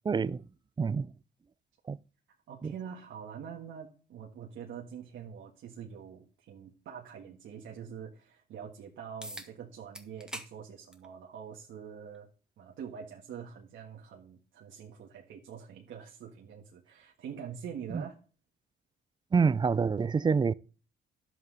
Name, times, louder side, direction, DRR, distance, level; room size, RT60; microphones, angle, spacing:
voice 1, 0.0-0.4 0.8-1.1 1.9-2.0 2.6-2.7 17.9-18.0 19.3-20.5, right 5 dB, 20° right, 0.4 m, -27 dB
voice 2, 2.5-12.3 12.6-18.2, right 8 dB, 75° right, 1.6 m, -45 dB
sound 1, 9.2-9.5 9.9-10.5 10.9-11.1 12.1-12.2 17.2-17.3, right 1 dB, 5° right, 1.5 m, -42 dB
11.0 x 8.0 x 3.9 m
cardioid pair, 90°, 20 cm